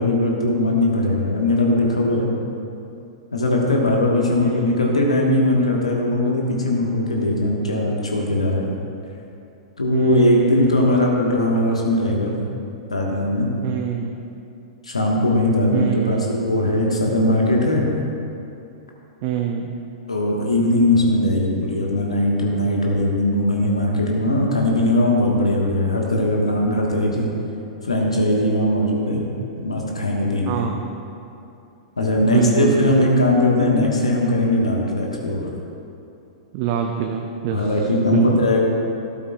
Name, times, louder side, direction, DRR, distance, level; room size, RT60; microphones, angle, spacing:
voice 1, 0.0-2.3 3.3-8.6 9.8-12.4 12.9-13.5 14.8-17.8 20.1-27.3 27.8-29.2 29.6-30.6 32.0-35.5 37.5-38.6, left 1 dB, 80° left, -2 dB, 1.4 m, -19 dB
voice 2, 4.4-4.8 9.9-11.1 13.6-14.1 15.7-16.3 19.2-19.7 30.5-30.9 32.2-33.1 36.5-38.2, right 8 dB, 40° right, 3 dB, 0.7 m, -25 dB
12.5 x 12.5 x 2.4 m, 2.7 s
figure-of-eight pair, 100°, 3 cm